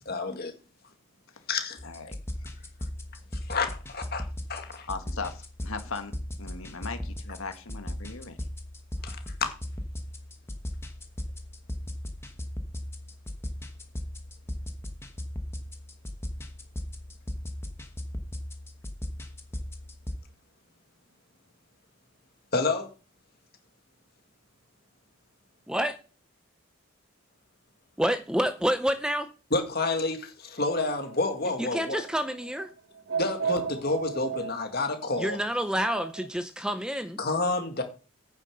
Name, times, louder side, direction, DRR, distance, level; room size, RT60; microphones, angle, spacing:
voice 1, 0.1-0.5 1.5-1.8 3.5-4.9 9.0-9.2 22.5-22.9 29.5-32.0 33.2-35.4 37.2-37.8, left 3 dB, 45° left, 5 dB, 1.9 m, -29 dB
voice 2, 1.8-2.2 4.9-8.4, left 4 dB, 75° left, 7 dB, 1.6 m, -38 dB
sound 1, 1.8-20.2, left 1 dB, 10° left, 1.1 m, -38 dB
voice 3, 28.0-29.3 31.6-32.7 35.2-37.2, equal, 5° right, 10 dB, 0.5 m, -28 dB
sound 2, 30.7-36.3, right 6 dB, 60° right, 1.0 m, -36 dB
9.5 x 6.5 x 6.5 m, 0.35 s
head